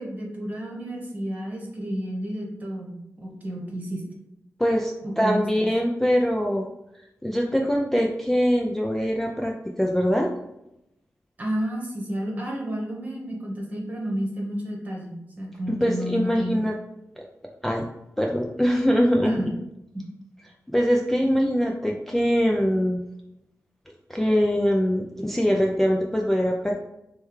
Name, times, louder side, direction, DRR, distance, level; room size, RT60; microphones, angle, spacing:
voice 1, 0.0-4.0 5.0-5.5 11.4-16.6 19.2-19.5 19.9-20.1, equal, 30° right, -2 dB, 1.1 m, -31 dB
voice 2, 4.6-6.7 7.2-10.3 15.8-16.7 17.2-17.3 17.6-17.9 18.2-19.4 20.7-23.0 24.1-26.8, equal, 5° left, 0 dB, 0.3 m, -23 dB
6.6 x 2.2 x 3.1 m, 0.86 s
wide cardioid pair, 160°, 5 cm